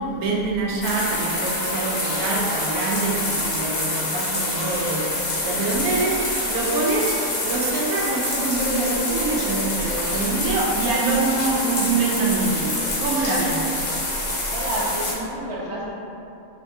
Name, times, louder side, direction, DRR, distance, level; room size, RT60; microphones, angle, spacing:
voice 1, 0.0-14.1, right 3 dB, 80° right, -2 dB, 1.1 m, -25 dB
sound 1, 0.8-15.1, left 2 dB, 45° left, 0.5 m, -26 dB
voice 2, 14.5-16.0, right 1 dB, 35° right, -6 dB, 0.5 m, -29 dB
4.3 x 3.2 x 2.7 m, 2.7 s
omnidirectional pair, 1.6 m